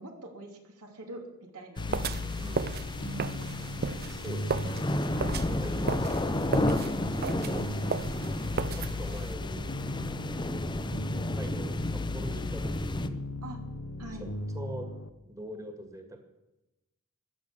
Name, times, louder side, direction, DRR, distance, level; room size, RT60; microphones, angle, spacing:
voice 1, 0.0-1.9 3.0-3.8 5.1-5.5 7.3-8.0 13.4-13.6 14.0-14.3, right 1 dB, 80° right, 3 dB, 2.9 m, -44 dB
sound 1, 1.8-15.1, left 2 dB, 65° left, 1.0 m, -37 dB
sound 2, 1.8-13.1, left 1 dB, 20° left, 0.8 m, -33 dB
voice 2, 1.8-2.8 4.1-6.7 7.1-7.7 8.7-9.8 10.1-13.3 14.2-14.3 14.5-14.9 15.3-16.2, right 1 dB, 15° right, 4 dB, 1.9 m, -44 dB
sound 3, 1.9-9.3, right 5 dB, 45° right, 0.6 m, -36 dB
15.5 x 10.5 x 7.2 m, 0.97 s
head